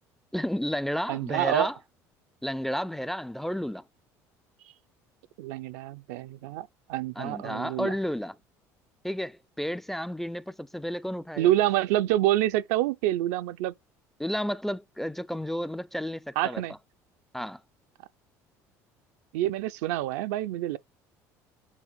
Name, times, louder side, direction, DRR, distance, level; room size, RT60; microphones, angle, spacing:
voice 1, 0.3-1.8 2.4-3.8 7.2-8.4 9.0-11.5 14.2-16.6 17.3-17.6, equal, 5° left, 0.4 m, -32 dB
voice 2, 1.1-1.7 5.4-7.9 11.4-13.7 16.4-16.7 19.3-20.8, right 14 dB, 80° right, 0.5 m, -27 dB
7.3 x 4.2 x 3.9 m
supercardioid pair, 80°, 8 cm